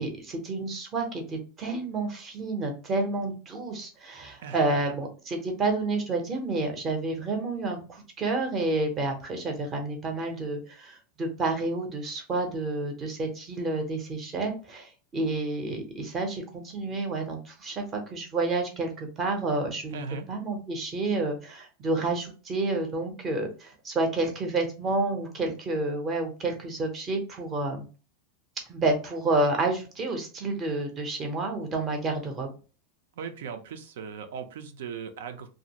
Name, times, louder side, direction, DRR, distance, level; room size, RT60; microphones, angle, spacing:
voice 1, 0.0-20.0 20.3-27.9 28.7-32.5, right 2 dB, 20° right, 4 dB, 0.7 m, -29 dB
voice 2, 4.4-4.8 19.9-20.3 33.2-35.5, right 6 dB, 75° right, 7 dB, 0.5 m, -38 dB
2.6 x 2.4 x 2.8 m, 0.34 s
supercardioid pair, 165°, 0 cm